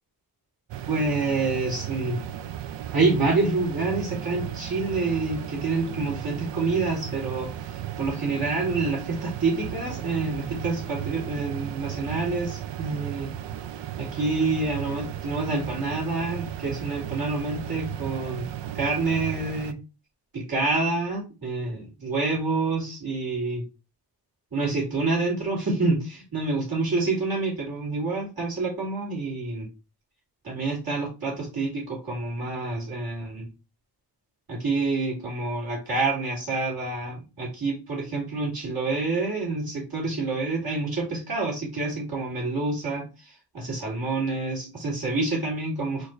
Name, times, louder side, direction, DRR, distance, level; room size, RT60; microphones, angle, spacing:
sound 1, 0.7-19.7, right 11 dB, 85° right, 0.5 m, -35 dB
voice 1, 0.9-2.2 2.9-13.3 14.0-18.5 18.7-19.8 20.3-23.6 24.5-29.7 30.4-33.5 34.5-46.1, right 3 dB, 60° right, -3 dB, 2.4 m, -27 dB
4.5 x 2.6 x 4.4 m, 0.30 s
wide cardioid pair, 145°, 42 cm